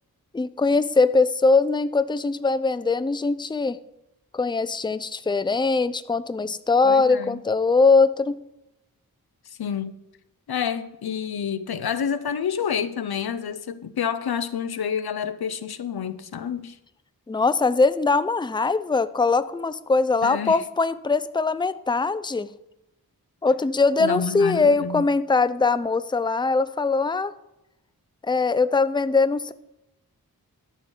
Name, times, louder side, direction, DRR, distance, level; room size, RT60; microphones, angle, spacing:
voice 1, 0.3-3.8 4.3-8.4 17.3-22.5 23.4-27.3 28.2-29.5, left 4 dB, 10° left, 0.5 m, -21 dB
voice 2, 6.8-7.4 9.5-9.9 10.5-16.8 20.2-20.6 24.0-25.1, left 7 dB, 80° left, 0.7 m, -29 dB
12.5 x 4.5 x 6.9 m
cardioid pair, 45°, 37 cm